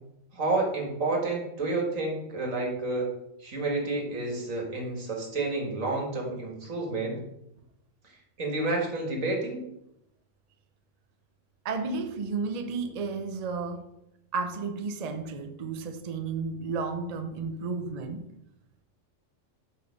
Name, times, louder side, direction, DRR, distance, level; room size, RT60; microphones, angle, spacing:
voice 1, 0.3-3.1 3.4-7.2 8.4-9.6, right 2 dB, 85° right, 2.2 m, -30 dB
voice 2, 11.6-13.9 14.3-18.2, right 4 dB, 40° right, 0.7 m, -32 dB
6.7 x 5.6 x 5.3 m
omnidirectional pair, 1.3 m